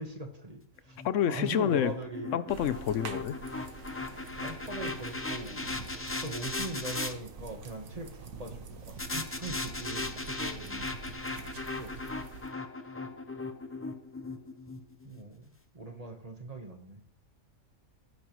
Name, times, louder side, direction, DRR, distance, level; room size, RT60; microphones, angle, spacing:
voice 1, 0.0-1.0 1.3-2.5 4.4-5.6 6.2-11.0 11.8-11.9 15.0-17.0, right 2 dB, 30° right, 1.3 m, -41 dB
sound 1, 0.9-7.1 9.0-15.2, left 3 dB, 15° left, 0.5 m, -38 dB
voice 2, 1.0-1.9 2.3-3.4, left 9 dB, 75° left, 0.9 m, -28 dB
sound 2, 2.5-12.5, right 5 dB, 80° right, 1.5 m, -46 dB
16.0 x 8.6 x 3.1 m
omnidirectional pair, 1.4 m